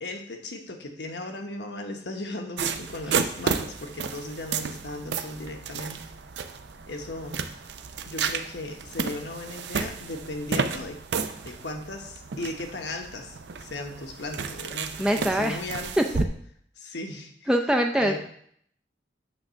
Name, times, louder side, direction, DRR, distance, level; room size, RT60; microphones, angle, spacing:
voice 1, 0.0-6.0 6.9-7.4 8.0-11.0 11.4-16.1 16.8-17.5 18.0-18.2, left 2 dB, 75° left, 4 dB, 1.1 m, -37 dB
sound 1, 2.6-16.3, right 5 dB, 75° right, 0.5 m, -32 dB
voice 2, 15.0-15.6 16.0-16.2 17.5-18.2, equal, 5° right, 3 dB, 0.4 m, -23 dB
8.6 x 3.6 x 6.3 m, 0.66 s
head